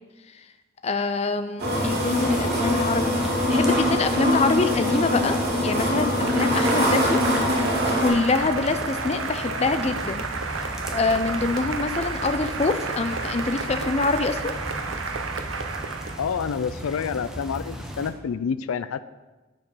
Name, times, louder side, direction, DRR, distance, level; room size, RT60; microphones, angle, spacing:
voice 1, 0.8-3.1 3.5-5.4 5.6-7.2 8.0-10.2 10.9-14.5, left 3 dB, 30° left, 9 dB, 0.4 m, -25 dB
sound 1, 1.6-8.1, equal, 50° right, 2.4 m, -23 dB
sound 2, 2.2-18.1, equal, 5° right, 0.7 m, -36 dB
Cheering / Applause, 6.2-16.3, right 4 dB, 70° right, 0.8 m, -31 dB
voice 2, 16.2-19.0, left 6 dB, 85° left, 14 dB, 0.4 m, -28 dB
10.0 x 4.7 x 6.3 m, 1.2 s
head